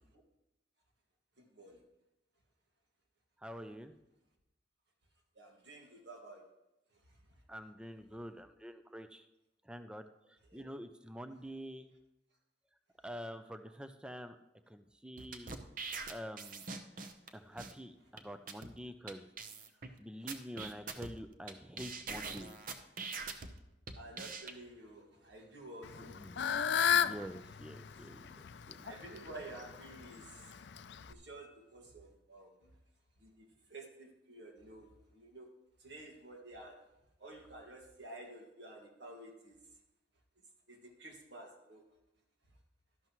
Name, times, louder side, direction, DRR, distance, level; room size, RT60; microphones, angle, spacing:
voice 1, 1.4-1.8 5.4-6.5 6.9-7.2 10.5-10.7 23.9-26.2 28.5-30.5 31.1-32.7 33.2-35.5 35.8-36.8 37.2-39.6 40.7-41.8, right 2 dB, 60° right, 1 dB, 1.9 m, -51 dB
voice 2, 3.4-4.0 7.5-9.3 9.6-11.9 13.0-14.4 14.7-15.6 16.1-16.6 17.3-19.3 20.0-22.7 26.0-26.5 26.9-28.8, equal, 5° right, 9 dB, 0.4 m, -47 dB
sound 1, 15.2-17.3 17.6-17.7 18.2-18.3 18.5-18.7 19.1-19.2 19.4-19.9 20.3-21.5 21.8-23.5 23.9-24.5, right 4 dB, 45° right, 0.8 m, -43 dB
Fowl / Bird, 25.8-31.1, left 8 dB, 65° left, 0.4 m, -34 dB
12.0 x 11.5 x 3.0 m, 0.91 s
head